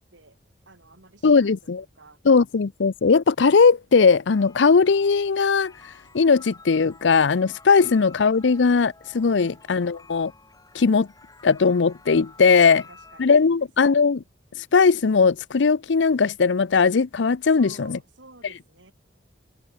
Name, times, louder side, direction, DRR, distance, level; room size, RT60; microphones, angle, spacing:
voice 1, 0.7-2.2 7.8-8.1 9.4-9.8 12.4-13.7 17.5-18.9, right 2 dB, 80° right, 7.4 m, -52 dB
voice 2, 1.2-1.8 2.3-5.7 6.1-10.3 10.7-11.1 11.4-12.8 13.2-14.2 14.6-18.0, left 5 dB, 70° left, 0.6 m, -19 dB
sound 1, 4.3-13.3, left 3 dB, 20° left, 3.0 m, -51 dB
open air
head